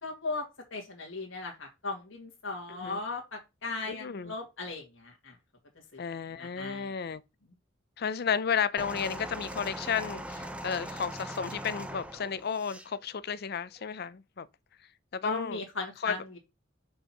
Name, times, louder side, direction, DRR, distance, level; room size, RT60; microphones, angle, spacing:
voice 1, 0.0-5.3 5.9-6.0 6.4-6.9 15.2-16.4, left 3 dB, 70° left, 1.9 m, -37 dB
voice 2, 2.7-3.0 3.9-4.3 6.0-7.2 8.0-14.5 15.1-15.7 16.0-16.2, left 7 dB, 50° left, 0.5 m, -33 dB
sound 1, 8.8-12.9 13.8-13.9, right 1 dB, 5° right, 0.7 m, -40 dB
5.3 x 4.5 x 5.9 m
head